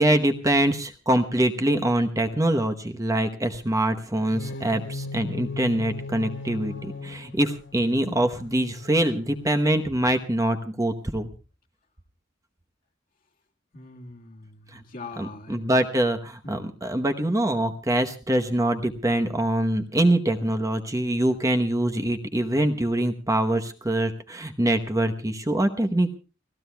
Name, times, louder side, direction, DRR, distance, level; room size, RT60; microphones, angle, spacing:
voice 1, 0.0-11.3 14.7-14.8 15.2-26.1, right 1 dB, 15° right, 6 dB, 1.0 m, -24 dB
sound 1, 4.2-10.1, left 3 dB, 70° left, 2.6 m, -38 dB
voice 2, 13.7-15.7 16.4-16.7, left 3 dB, 45° left, 1 dB, 1.8 m, -42 dB
30.0 x 15.5 x 2.3 m, 0.32 s
head